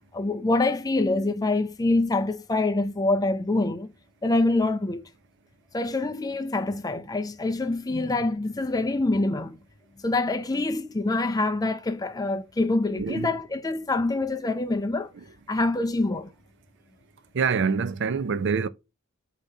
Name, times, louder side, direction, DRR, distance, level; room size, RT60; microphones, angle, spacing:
voice 1, 0.1-3.9 4.2-5.0 5.7-9.6 10.0-15.1 15.5-16.3, left 2 dB, 20° left, 0.5 m, -25 dB
voice 2, 13.0-13.3 17.3-18.7, right 5 dB, 60° right, 0.5 m, -25 dB
8.1 x 2.9 x 4.7 m
head